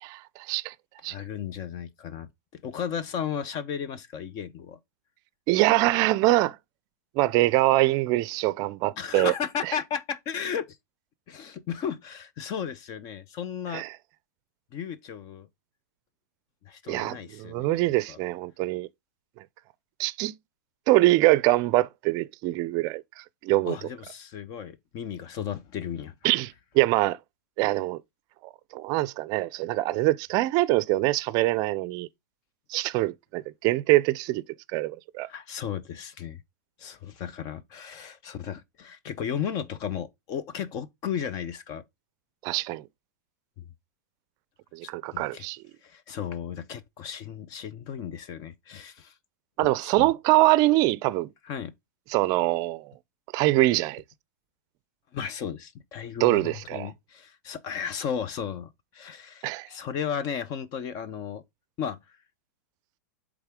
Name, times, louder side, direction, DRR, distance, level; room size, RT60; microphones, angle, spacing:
voice 1, 0.0-0.7 1.0-1.1 5.5-6.6 7.2-9.3 13.7-13.9 16.9-18.9 20.0-20.3 20.9-23.0 23.4-23.7 26.2-27.2 27.6-28.0 28.7-32.1 32.7-34.4 34.7-35.3 42.4-42.8 44.7-45.6 49.6-51.3 52.1-52.9 53.3-54.0 56.2-56.9 59.4-59.7, right 18 dB, 40° right, 0.5 m, -24 dB
voice 2, 1.1-4.8 9.0-10.8 11.3-13.8 14.7-15.5 16.6-17.8 18.1-18.2 23.6-26.1 35.2-36.4 36.8-41.8 43.6-43.7 44.8-45.5 45.8-49.1 49.6-50.1 51.4-51.7 55.1-61.4 61.8-62.2, left 8 dB, 40° left, 0.7 m, -35 dB
8.0 x 3.6 x 3.6 m
hypercardioid pair, 125°, 10 cm